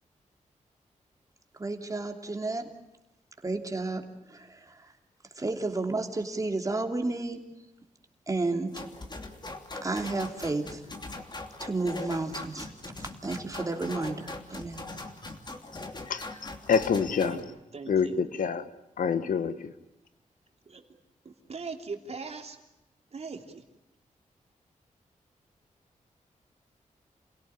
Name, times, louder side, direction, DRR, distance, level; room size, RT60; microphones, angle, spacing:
voice 1, 1.6-2.6 3.4-4.0 4.3-4.8 5.4-7.4 8.3-8.8 9.8-10.8 11.6-12.7 13.0-14.8, right 3 dB, 25° right, 4 dB, 2.9 m, -31 dB
sound 1, 8.7-17.4, left 2 dB, 35° left, 2.9 m, -41 dB
voice 2, 16.1-17.5 17.9-18.7 19.0-19.7, left 6 dB, 85° left, 12 dB, 1.4 m, -27 dB
voice 3, 16.9-18.2 20.7-20.8 21.2-22.6 23.1-23.6, right 4 dB, 50° right, 4 dB, 2.9 m, -40 dB
28.0 x 17.0 x 9.9 m, 0.92 s
wide cardioid pair, 90°, 13 cm